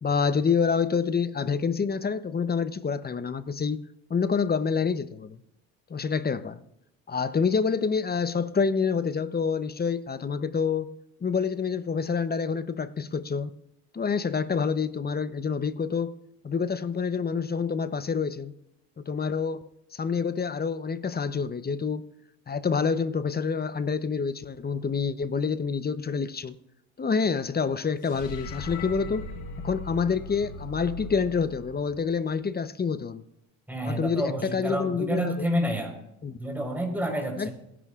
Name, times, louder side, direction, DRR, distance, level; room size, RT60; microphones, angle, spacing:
voice 1, 0.0-3.8 4.1-5.4 5.9-6.6 7.1-10.9 11.2-13.5 13.9-16.2 16.4-18.5 19.0-22.0 22.5-26.6 27.0-29.3 29.6-33.2 33.9-35.5 36.2-36.3 37.4-37.5, left 5 dB, 25° left, 0.8 m, -27 dB
sound 1, 28.0-32.4, left 2 dB, 80° left, 4.7 m, -39 dB
voice 2, 33.7-36.0 36.4-37.5, equal, 5° right, 4.5 m, -29 dB
27.5 x 11.0 x 2.5 m
supercardioid pair, 70°, 36 cm